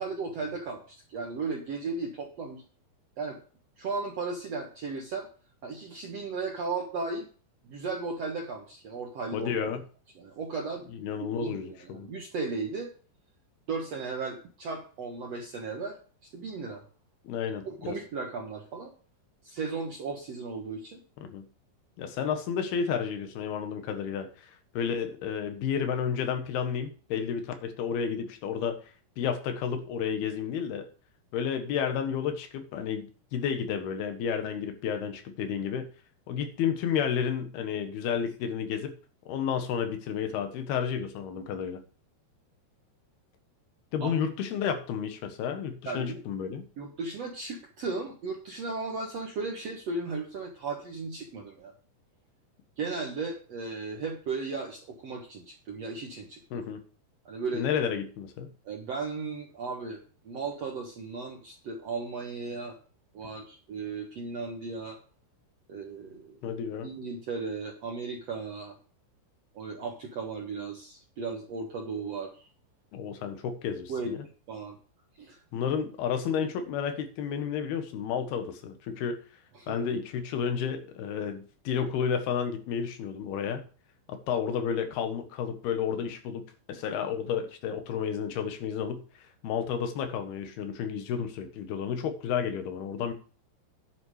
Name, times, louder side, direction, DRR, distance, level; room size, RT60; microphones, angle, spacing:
voice 1, 0.0-2.6 3.2-3.4 3.8-5.3 5.6-7.3 7.6-9.7 10.1-10.8 11.2-12.9 13.7-16.0 16.3-16.8 17.4-18.9 19.4-21.0 44.0-44.1 45.8-46.2 46.8-51.7 52.8-56.7 57.2-57.7 58.6-60.0 60.2-62.8 63.1-65.0 65.7-66.4 66.8-68.8 69.5-72.4 73.9-74.1 74.5-74.8 75.2-75.4 79.5-79.8, right 4 dB, 75° right, 1 dB, 1.4 m, -35 dB
voice 2, 9.3-9.8 10.9-12.1 17.2-18.0 21.2-21.4 22.0-28.8 29.2-30.9 31.3-35.9 36.3-38.9 39.3-41.8 43.9-46.6 56.5-56.8 57.5-58.5 66.4-66.9 72.9-74.2 75.5-79.2 79.7-83.6 84.1-86.4 86.7-89.0 89.4-93.1, left 7 dB, 65° left, 7 dB, 3.2 m, -31 dB
10.5 x 8.0 x 4.9 m, 0.39 s
omnidirectional pair, 5.2 m